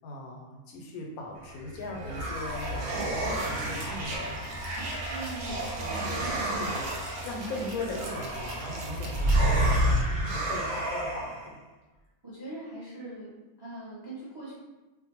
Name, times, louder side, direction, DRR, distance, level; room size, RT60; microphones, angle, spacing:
voice 1, 0.0-4.6 5.5-10.0 10.3-11.6, left 2 dB, 85° left, 1 dB, 1.0 m, -39 dB
sound 1, 1.5-11.5, right 1 dB, 75° right, 1.0 m, -30 dB
voice 2, 5.1-5.6 12.2-13.3 13.6-14.5, right 2 dB, 35° right, -9 dB, 0.4 m, -41 dB
2.6 x 2.1 x 2.8 m, 1.1 s
omnidirectional pair, 1.5 m